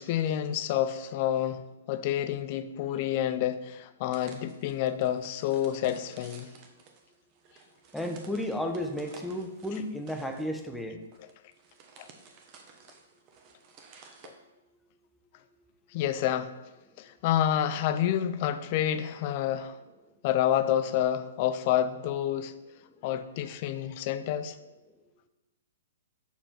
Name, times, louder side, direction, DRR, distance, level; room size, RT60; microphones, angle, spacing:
voice 1, 0.0-1.6 1.9-6.5 12.0-12.1 15.9-16.5 17.0-19.8 20.2-22.5 23.0-24.6, left 11 dB, 45° left, 0.5 m, -28 dB
sound 1, 4.1-14.3, right 5 dB, 35° right, 1.2 m, -54 dB
voice 2, 7.9-11.0, left 1 dB, 5° left, 0.8 m, -33 dB
6.9 x 5.0 x 5.9 m
hypercardioid pair, 135°, 0 cm